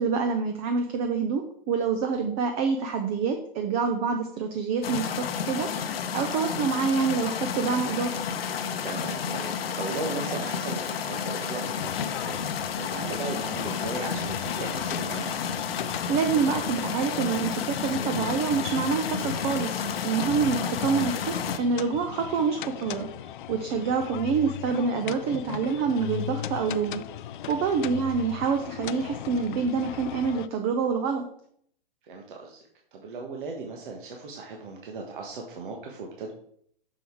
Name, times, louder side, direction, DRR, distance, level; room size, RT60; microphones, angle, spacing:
voice 1, 0.0-5.7 6.1-8.2 16.1-23.1 23.5-27.0 27.5-31.2, right 5 dB, 20° right, 6 dB, 0.5 m, -27 dB
sound 1, 4.8-21.6, left 7 dB, 85° left, 0.8 m, -31 dB
voice 2, 8.8-12.5 12.7-15.4 23.6-23.8 27.4-27.6 32.0-32.6 32.9-36.3, right 4 dB, 60° right, 1 dB, 1.4 m, -37 dB
sound 2, 11.8-30.5, left 11 dB, 60° left, 0.4 m, -38 dB
6.3 x 5.3 x 4.6 m, 0.65 s
hypercardioid pair, 150°, 29 cm